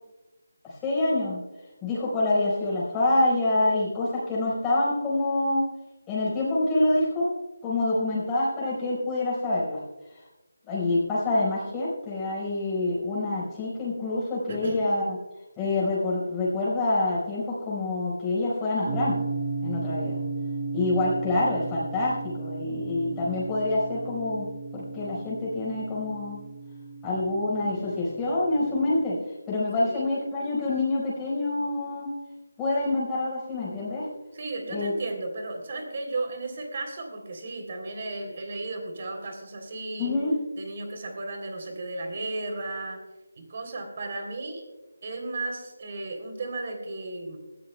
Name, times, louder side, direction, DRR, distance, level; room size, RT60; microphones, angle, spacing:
voice 1, 0.6-1.4 1.8-5.6 6.1-7.3 7.6-9.8 10.7-15.2 15.6-19.2 19.6-20.2 20.7-24.5 24.7-26.4 27.0-29.1 29.5-32.1 32.6-34.1 34.7-34.9 40.0-40.3, left 2 dB, 10° left, -7 dB, 4.5 m, -26 dB
voice 2, 14.5-14.9 29.8-30.1 34.3-40.2 40.6-43.0 43.4-44.6 45.0-47.4, right 2 dB, 40° right, 4 dB, 3.2 m, -34 dB
sound 1, 18.9-29.0, right 3 dB, 25° right, 1.7 m, -35 dB
20.0 x 14.0 x 2.2 m, 1.1 s
figure-of-eight pair, 165°, 0 cm